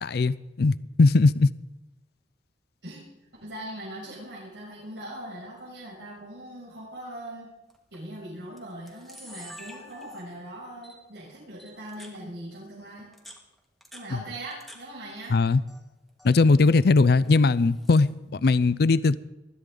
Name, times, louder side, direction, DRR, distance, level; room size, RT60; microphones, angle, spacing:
voice 1, 0.0-1.5 15.3-15.6 16.2-19.2, left 3 dB, 60° left, 0.5 m, -20 dB
voice 2, 3.4-7.5 7.9-13.1 13.9-15.4 16.6-16.8, right 1 dB, 80° right, 6.6 m, -40 dB
Camera, 7.7-8.0 8.6-8.7 8.9-10.4 10.8-11.0 11.6-12.2 13.0-14.8 15.1-15.8 16.1-16.4 17.2-18.1, equal, ahead, 2.1 m, -48 dB
20.5 x 14.0 x 3.9 m
head